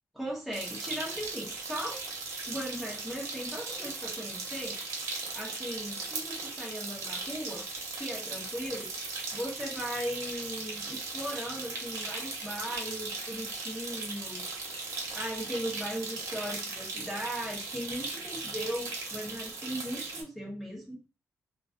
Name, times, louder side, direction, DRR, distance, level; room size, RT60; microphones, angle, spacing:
voice 1, 0.1-2.0 2.5-4.8 5.3-7.6 7.9-8.9 9.3-21.0, equal, ahead, -3 dB, 0.8 m, -38 dB
sound 1, 0.5-20.2, right 3 dB, 85° right, 0.7 m, -38 dB
2.4 x 2.3 x 2.3 m, 0.32 s
wide cardioid pair, 120°, 5 cm